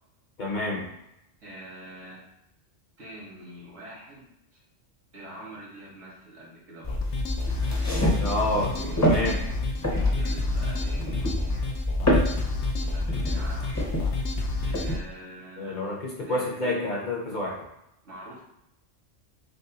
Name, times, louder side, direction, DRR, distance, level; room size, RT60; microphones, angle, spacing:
voice 1, 0.4-0.9 8.2-8.7 9.0-9.4 15.6-17.6, left 2 dB, 45° left, -3 dB, 1.0 m, -28 dB
voice 2, 1.4-2.2 3.0-4.6 5.1-7.0 8.4-8.9 10.1-11.6 12.7-13.8 14.6-15.8 16.3-16.8 18.0-18.4, right 1 dB, 85° right, -5 dB, 1.9 m, -44 dB
sound 1, 6.8-14.9, left 1 dB, 15° left, 0.7 m, -27 dB
sound 2, 6.9-15.0, left 3 dB, 75° left, 0.9 m, -32 dB
6.4 x 2.2 x 2.9 m, 0.84 s
omnidirectional pair, 1.2 m